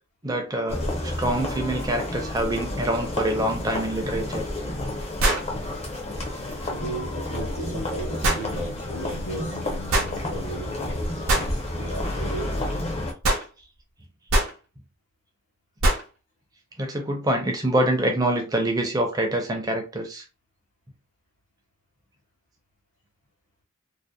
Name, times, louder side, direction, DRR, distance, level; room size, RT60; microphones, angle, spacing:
voice 1, 0.2-4.5 16.8-20.2, right 1 dB, 15° right, 0.5 m, -25 dB
sound 1, 0.7-13.1, left 1 dB, 30° left, 0.6 m, -30 dB
sound 2, 4.0-4.1 5.2-5.5 8.2-8.5 9.9-10.1 11.3-11.5 13.2-13.5 14.3-14.6 15.8-16.1, right 1 dB, 75° right, 0.7 m, -22 dB
voice 2, 6.7-9.6 10.1-12.8, right 1 dB, 60° left, 1.1 m, -36 dB
2.6 x 2.1 x 2.2 m
head